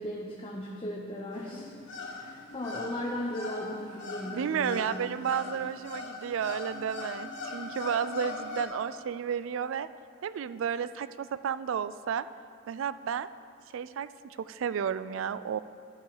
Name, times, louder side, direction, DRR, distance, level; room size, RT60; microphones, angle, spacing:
voice 1, 0.0-1.7 2.0-4.9, left 1 dB, 25° left, -2 dB, 0.8 m, -37 dB
sound 1, 1.3-8.6, left 3 dB, 60° left, 1.8 m, -40 dB
voice 2, 4.3-9.9 10.2-12.3 12.7-13.3 13.7-15.6, right 8 dB, 65° right, 15 dB, 0.3 m, -32 dB
12.0 x 6.9 x 4.8 m, 2.8 s
head